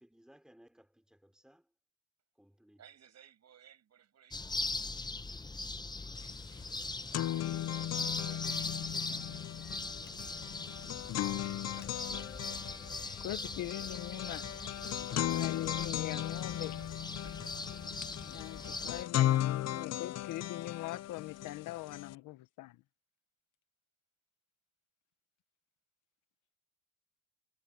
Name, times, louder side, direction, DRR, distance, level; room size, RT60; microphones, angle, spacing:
voice 1, 0.0-1.7 2.4-2.8, equal, ahead, 3.9 m, -62 dB
voice 2, 2.8-5.3 6.0-6.7 7.0-10.0 11.2-13.3 14.1-15.5 16.4-17.9 18.6-18.8 20.0-20.1, right 9 dB, 60° right, 7.7 m, -62 dB
sound 1, 4.3-19.0, left 3 dB, 15° left, 0.8 m, -41 dB
sound 2, 6.2-6.3 6.6-22.2, left 13 dB, 60° left, 0.5 m, -36 dB
zavírání a otevírání dveří - opening and closing doors, 9.6-10.6 11.2-13.6 14.1-14.5, left 5 dB, 35° left, 4.7 m, -65 dB
voice 3, 13.2-14.4 15.3-16.8 18.0-22.8, left 15 dB, 90° left, 1.0 m, -42 dB
cardioid pair, 90°, 30 cm